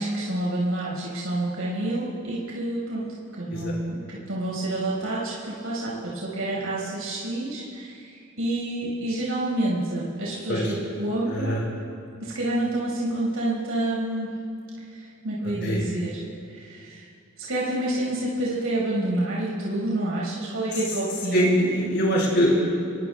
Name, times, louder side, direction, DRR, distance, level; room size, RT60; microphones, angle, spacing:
voice 1, 0.0-3.1 3.3-11.6 12.2-14.3 14.9-16.2 16.5-17.1 17.4-21.5, right 1 dB, 85° right, -5 dB, 5.3 m, -28 dB
voice 2, 11.3-11.6 15.6-15.8 21.3-22.5, equal, 55° left, -4 dB, 5.4 m, -22 dB
26.5 x 22.5 x 2.3 m, 2.4 s
head